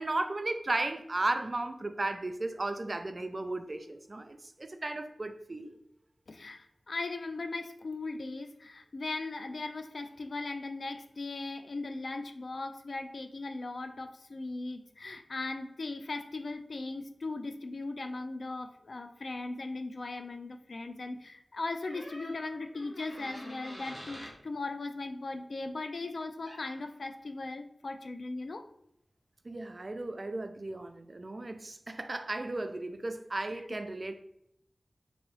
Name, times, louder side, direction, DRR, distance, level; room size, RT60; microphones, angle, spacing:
voice 1, 0.0-5.8 29.4-34.1, right 2 dB, 45° right, 8 dB, 0.4 m, -35 dB
voice 2, 6.3-28.7, left 3 dB, 75° left, 7 dB, 0.3 m, -38 dB
sound 1, 21.8-24.4 26.4-26.7, equal, 40° left, 1.4 m, -47 dB
3.6 x 3.0 x 3.0 m, 0.76 s
wide cardioid pair, 65°, 0 cm